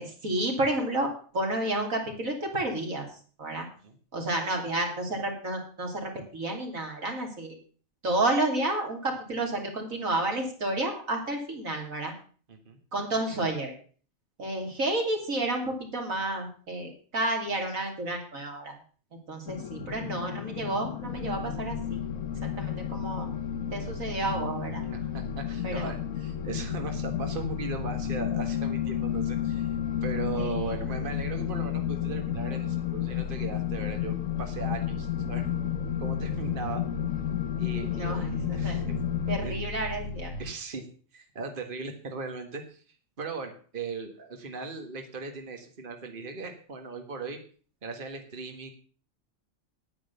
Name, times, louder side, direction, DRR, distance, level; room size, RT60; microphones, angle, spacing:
voice 1, 0.0-3.1 3.4-3.7 4.1-7.5 8.0-12.1 12.9-13.7 14.4-18.7 19.3-22.0 22.4-23.3 23.7-24.8 25.6-25.9 30.3-30.8 37.9-38.8 39.3-40.3, right 2 dB, 85° right, 2 dB, 3.3 m, -31 dB
voice 2, 12.5-12.8 24.8-29.7 30.0-35.5 36.0-36.8 37.6-38.2 38.5-38.9 39.4-39.6 40.4-40.9 41.1-42.8 43.2-47.4 47.8-48.7, right 4 dB, 40° right, 5 dB, 1.7 m, -38 dB
sound 1, 19.5-39.4, left 13 dB, 90° left, 1.2 m, -32 dB
sound 2, 21.0-40.5, left 1 dB, 65° left, 1.6 m, -38 dB
10.0 x 9.5 x 6.8 m, 0.42 s
omnidirectional pair, 1.4 m